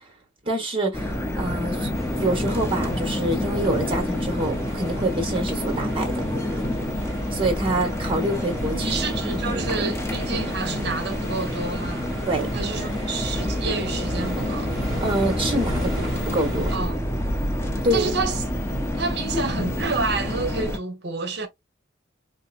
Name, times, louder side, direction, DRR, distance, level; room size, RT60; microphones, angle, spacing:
voice 1, 0.4-1.9 2.1-6.2 7.3-9.0 9.5-9.7 12.3-12.5 15.0-16.7 17.8-18.2 19.3-19.4, right 1 dB, 25° right, 1.2 m, -26 dB
sound 1, 0.9-20.8, left 1 dB, 15° left, 0.5 m, -28 dB
sound 2, 1.9-16.8, equal, 5° right, 1.6 m, -37 dB
voice 2, 8.7-12.1 12.5-14.7 16.7-17.0 17.9-18.4 19.0-21.5, right 4 dB, 55° right, 0.8 m, -29 dB
3.3 x 2.7 x 2.4 m
head